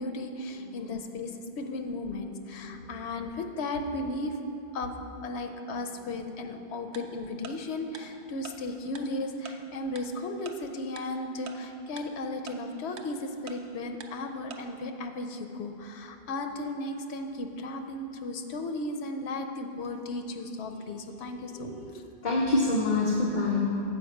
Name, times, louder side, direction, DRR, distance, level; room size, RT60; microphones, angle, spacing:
voice 1, 0.0-4.4 4.7-4.9 5.2-22.1, left 2 dB, 85° left, 6 dB, 0.9 m, -35 dB
voice 2, 2.6-3.0 22.2-23.8, left 2 dB, 50° left, -1 dB, 0.8 m, -26 dB
Tick-tock, 6.9-7.0 7.4-7.5 7.9-8.0 8.4-8.5 9.0-9.1 9.5-9.6 10.0-10.1 10.5-10.6 11.0-11.1 11.5-11.6 12.0-12.1 12.5-12.6 13.0-13.1 13.5-13.6 14.0-14.1 14.5-14.6, right 7 dB, 85° right, 0.9 m, -42 dB
7.7 x 5.1 x 6.3 m, 2.8 s
omnidirectional pair, 1.1 m